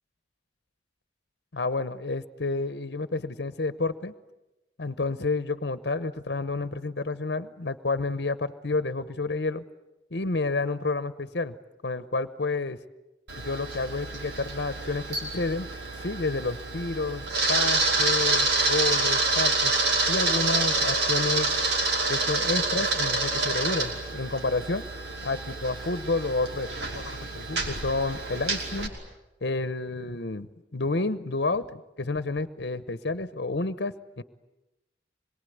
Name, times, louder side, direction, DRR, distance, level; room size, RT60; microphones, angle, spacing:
voice 1, 1.5-4.1 4.8-9.6 10.1-11.5 11.8-12.8 13.4-15.7 16.0-19.7 20.1-21.5 22.1-24.8 25.2-26.7 26.9-28.9 29.4-34.2, left 3 dB, 75° left, 12 dB, 0.9 m, -30 dB
Camera, 13.3-28.9, right 3 dB, 80° right, 5.3 m, -27 dB
26.0 x 22.5 x 9.4 m, 1.0 s
head